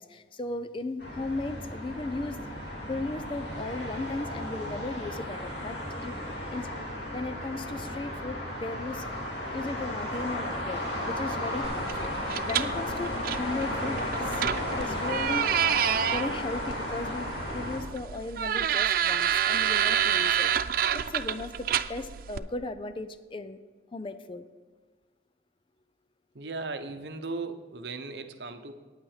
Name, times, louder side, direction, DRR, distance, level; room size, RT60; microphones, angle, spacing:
voice 1, 0.0-2.4 2.9-6.1 6.5-6.7 7.1-9.1 9.5-12.1 12.4-14.4 14.7-15.5 16.1-20.5 21.1-23.6 23.9-24.5, left 2 dB, 30° left, 11 dB, 0.4 m, -36 dB
sound 1, 1.0-17.8, left 1 dB, 75° left, 2.5 m, -34 dB
sound 2, 11.6-22.4, right 9 dB, 55° right, 0.4 m, -29 dB
voice 2, 26.3-28.7, right 3 dB, 70° right, 8 dB, 0.8 m, -37 dB
9.1 x 9.0 x 4.9 m, 1.4 s
head